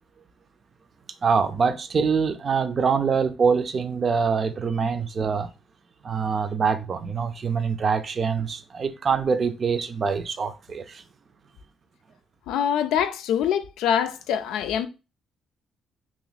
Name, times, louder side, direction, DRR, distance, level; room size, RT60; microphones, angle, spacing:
voice 1, 1.2-5.5 6.0-11.0, right 5 dB, 45° right, 0.5 m, -24 dB
voice 2, 12.5-14.9, left 9 dB, 90° left, 0.4 m, -24 dB
3.0 x 2.6 x 4.0 m
cardioid pair, 90°, 0 cm